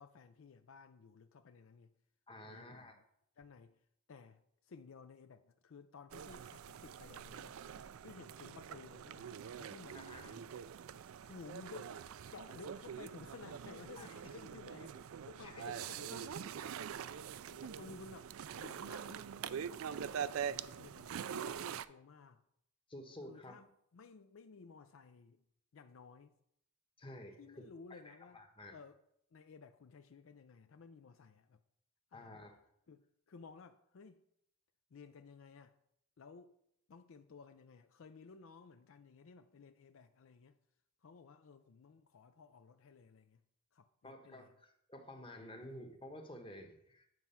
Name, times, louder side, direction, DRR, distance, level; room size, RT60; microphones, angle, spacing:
voice 1, 0.0-1.9 2.4-3.0 3.4-3.8 4.1-7.6 8.0-9.3 9.6-10.4 11.2-12.0 12.3-16.5 17.4-19.3 19.9-22.4 23.3-25.4 25.7-26.4 27.4-28.4 28.7-29.0 29.3-31.6 32.1-32.4 32.9-34.2 34.9-35.8 36.2-36.6 36.9-40.6 41.0-43.4 43.7-44.5, left 5 dB, 65° left, 0.4 m, -56 dB
voice 2, 2.3-3.0 9.9-10.3 13.9-14.1 15.4-15.6 22.9-23.5 27.0-27.5 27.9-28.8 32.1-32.5 44.0-47.1, left 1 dB, 25° left, 1.1 m, -51 dB
sound 1, 6.1-21.9, right 8 dB, 80° right, 0.4 m, -44 dB
9.4 x 4.5 x 5.6 m
head